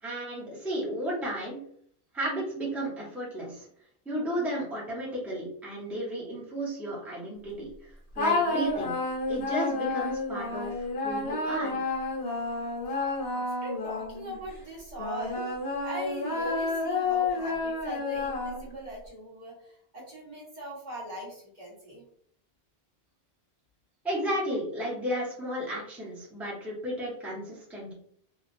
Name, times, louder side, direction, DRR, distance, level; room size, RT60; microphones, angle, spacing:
voice 1, 0.0-1.7 2.1-3.7 4.0-8.9 9.3-11.9 24.0-27.9, equal, ahead, -6 dB, 0.8 m, -33 dB
sound 1, 8.2-14.4 15.0-18.9, left 3 dB, 75° left, 1.1 m, -30 dB
voice 2, 13.3-15.5 15.8-22.0, right 1 dB, 45° right, -7 dB, 1.4 m, -40 dB
3.2 x 2.3 x 2.6 m, 0.62 s
omnidirectional pair, 1.0 m